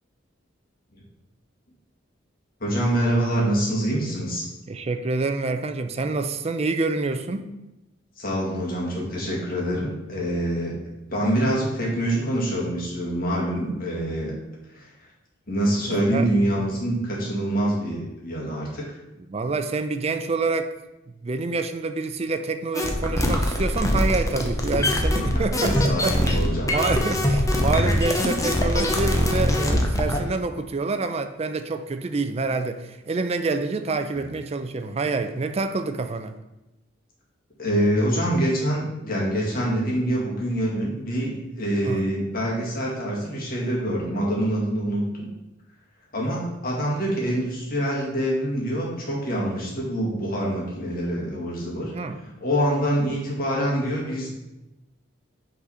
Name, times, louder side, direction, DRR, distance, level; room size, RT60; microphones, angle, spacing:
voice 1, 2.6-4.5 8.2-10.8 11.1-14.3 14.7-14.9 15.5-19.0 25.0-26.7 34.1-34.3 37.6-45.0 46.1-51.9 52.2-54.3, right 1 dB, 45° left, -3 dB, 1.9 m, -25 dB
voice 2, 4.7-7.5 15.9-16.3 19.3-20.7 21.2-36.3 41.8-42.1 51.9-52.2, right 3 dB, 30° right, 8 dB, 0.4 m, -27 dB
sound 1, 22.7-30.3, left 1 dB, 15° left, 0.7 m, -23 dB
5.7 x 4.0 x 5.6 m, 0.96 s
head